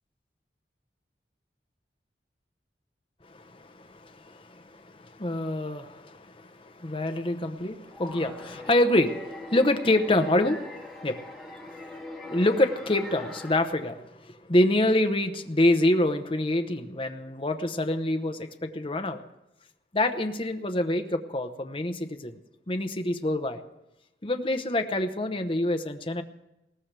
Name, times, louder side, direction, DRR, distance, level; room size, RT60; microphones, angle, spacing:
voice 1, 3.2-11.4 12.2-19.2 19.9-22.4 22.7-23.6 24.2-26.2, left 1 dB, 30° left, 7 dB, 0.9 m, -26 dB
sound 1, 7.9-13.6, left 2 dB, ahead, 2.6 m, -41 dB
20.5 x 17.5 x 3.4 m, 0.94 s
head